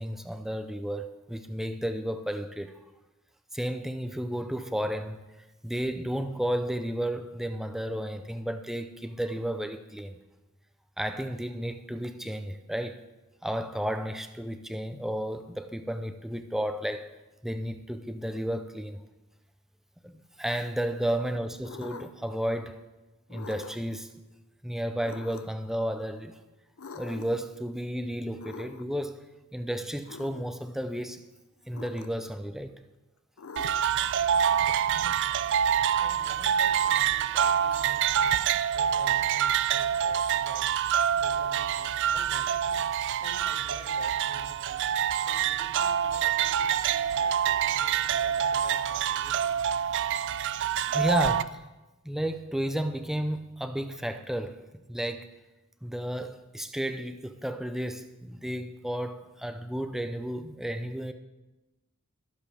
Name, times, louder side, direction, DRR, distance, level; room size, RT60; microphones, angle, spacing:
voice 1, 0.0-2.7 3.5-5.2 5.6-10.2 11.0-13.0 13.4-17.1 17.4-19.0 20.0-22.8 23.3-24.1 24.6-26.4 26.9-29.2 29.5-31.2 31.7-32.8 50.8-51.6 52.0-55.3 55.8-61.1, equal, ahead, 0.6 m, -32 dB
sound 1, 21.6-22.3 23.3-24.0 25.0-25.7 26.8-27.5 28.4-29.0 30.0-30.5 31.7-32.4 33.4-34.0, left 4 dB, 80° left, 0.7 m, -44 dB
sound 2, 33.6-51.4, right 9 dB, 60° right, 0.4 m, -26 dB
voice 2, 35.2-38.4 38.7-40.8 41.2-42.8 43.2-45.0 45.2-49.7, left 1 dB, 25° left, 1.7 m, -50 dB
21.5 x 7.4 x 3.5 m
head